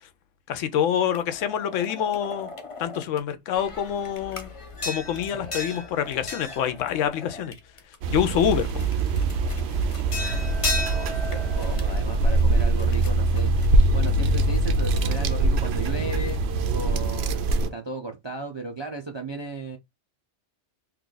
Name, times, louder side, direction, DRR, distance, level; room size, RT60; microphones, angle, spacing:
voice 1, 0.5-2.5 2.8-4.5 4.8-7.5 8.1-8.9, left 9 dB, 85° left, 0.9 m, -26 dB
sound 1, 1.1-3.2 3.5-7.9 8.4-14.3, left 2 dB, 35° left, 0.7 m, -36 dB
sound 2, 8.0-17.7, right 2 dB, 65° right, 0.8 m, -23 dB
voice 2, 10.7-13.5 13.9-16.4 16.7-19.8, right 3 dB, 50° right, 0.3 m, -35 dB
3.1 x 2.4 x 3.8 m
omnidirectional pair, 1.3 m